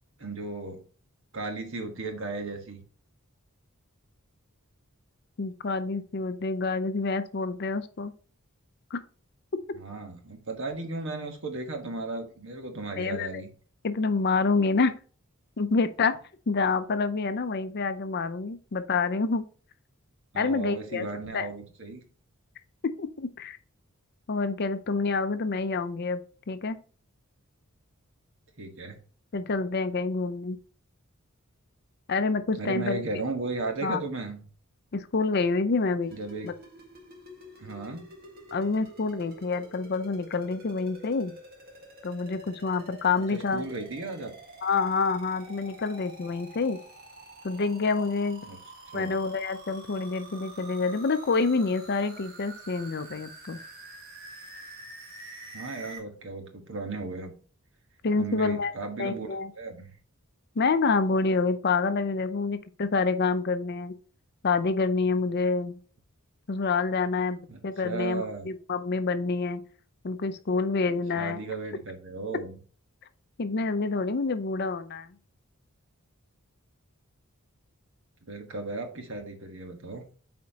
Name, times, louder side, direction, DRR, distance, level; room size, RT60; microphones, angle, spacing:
voice 1, 0.2-0.8 1.3-2.8 9.7-13.5 20.3-22.0 28.6-29.0 32.6-34.4 36.1-36.5 37.6-38.0 43.2-44.3 48.4-48.6 48.9-49.1 55.5-57.3 58.2-59.3 59.6-59.9 67.5-68.5 71.2-72.6 78.2-80.0, right 3 dB, 60° right, 4 dB, 1.4 m, -35 dB
voice 2, 5.4-8.1 8.9-9.0 12.9-13.4 13.8-14.9 15.6-16.1 16.5-19.4 20.4-21.1 21.3-21.5 22.8-23.6 24.3-26.2 26.5-26.8 29.3-30.6 32.1-33.0 33.8-34.0 34.9-36.2 36.4-36.5 38.5-41.3 42.0-43.6 44.6-46.8 47.4-48.4 48.9-53.6 58.0-58.7 59.0-59.5 60.6-63.9 64.4-65.8 66.5-69.6 70.0-71.4 73.4-75.1, left 4 dB, 45° left, 11 dB, 0.5 m, -27 dB
sound 1, 36.0-56.0, right 2 dB, 45° right, 1.7 m, -48 dB
8.4 x 4.3 x 2.8 m, 0.40 s
head